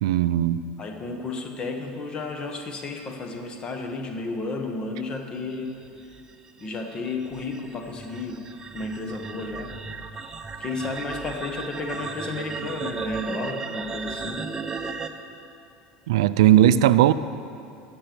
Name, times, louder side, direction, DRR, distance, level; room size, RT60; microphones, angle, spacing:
voice 1, 0.0-0.7 16.1-17.1, right 12 dB, 90° right, 14 dB, 0.4 m, -18 dB
voice 2, 0.8-5.8 6.6-8.5 8.7-9.7 10.2-10.3 10.6-14.5, left 3 dB, 35° left, 4 dB, 1.4 m, -32 dB
sound 1, 5.8-15.1, right 5 dB, 20° right, 0.8 m, -35 dB
14.0 x 6.8 x 6.9 m, 2.6 s
supercardioid pair, 115°, 3 cm